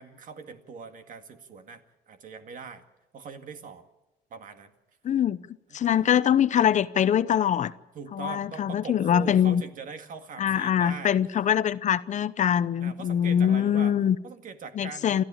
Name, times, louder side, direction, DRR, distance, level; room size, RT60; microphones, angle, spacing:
voice 1, 0.0-2.8 3.1-3.9 4.3-4.7 7.9-11.2 12.8-13.9 14.2-15.2, right 5 dB, 50° right, 2.1 m, -41 dB
voice 2, 5.0-5.4 5.7-7.7 8.1-9.6 10.4-14.2 14.8-15.2, left 9 dB, 45° left, 0.7 m, -23 dB
28.5 x 13.5 x 8.9 m
cardioid pair, 110°, 17 cm